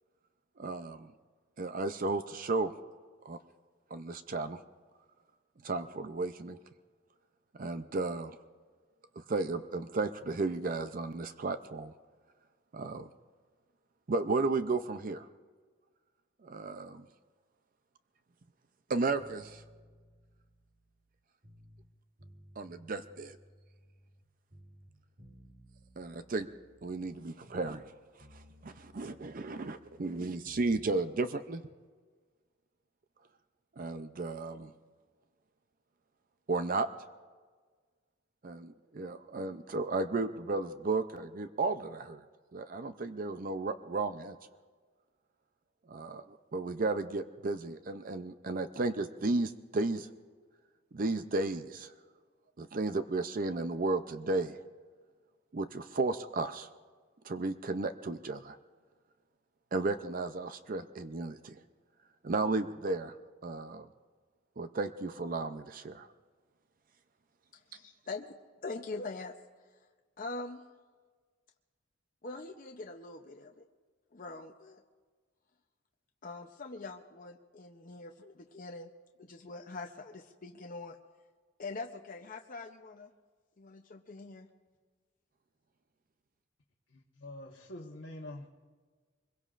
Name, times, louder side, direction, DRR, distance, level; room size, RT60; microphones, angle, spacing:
voice 1, 0.6-1.1 1.6-2.7 3.2-3.4 3.9-4.6 5.6-6.6 7.6-8.4 9.2-11.9 12.7-13.1 14.1-15.3 16.4-17.1 18.9-19.6 22.6-23.4 26.0-26.5 26.8-27.9 28.3-31.6 33.8-34.7 36.5-36.9 38.4-42.2 42.5-44.4 45.9-50.1 50.9-51.9 52.6-54.6 55.5-56.7 57.2-58.6 59.7-61.6 62.2-63.1 63.4-63.9 64.6-66.1, right 3 dB, 40° right, 10 dB, 0.5 m, -34 dB
sound 1, 19.2-21.9 22.2-24.2 24.5-27.9 28.2-30.8, equal, 60° right, 2.5 m, -58 dB
voice 2, 67.7-68.4 68.6-69.3 70.2-70.6 72.2-73.6 74.1-74.8 76.2-78.9 79.2-80.9 81.6-83.1 83.6-84.5, left 3 dB, 40° left, 3 dB, 0.6 m, -43 dB
voice 3, 86.9-88.5, left 1 dB, 60° left, -3 dB, 1.2 m, -45 dB
24.5 x 22.0 x 2.5 m, 1.5 s
head